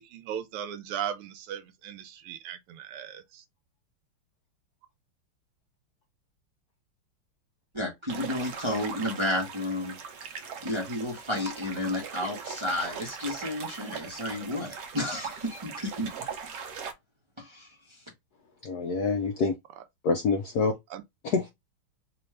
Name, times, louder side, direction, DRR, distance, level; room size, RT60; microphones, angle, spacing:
voice 1, 0.0-3.4 19.7-19.8 20.9-21.0, right 9 dB, 80° right, 1.5 m, -37 dB
voice 2, 7.7-16.1 17.4-18.0, left 1 dB, 20° right, 0.7 m, -32 dB
sound 1, 8.1-16.9, right 6 dB, 65° right, 1.2 m, -40 dB
voice 3, 18.6-19.5 20.0-20.7 21.3-21.5, left 4 dB, 75° left, 0.9 m, -26 dB
4.2 x 2.5 x 3.2 m
omnidirectional pair, 2.4 m